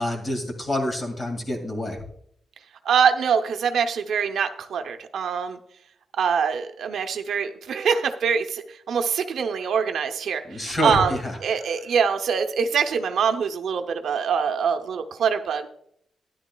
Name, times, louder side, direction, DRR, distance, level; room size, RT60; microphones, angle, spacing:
voice 1, 0.0-2.0 10.5-11.4, left 1 dB, 30° left, 4 dB, 2.0 m, -27 dB
voice 2, 2.8-5.6 6.2-11.1 11.4-15.7, right 6 dB, 80° right, 6 dB, 0.6 m, -24 dB
13.0 x 10.5 x 2.2 m, 0.70 s
wide cardioid pair, 120°, 0 cm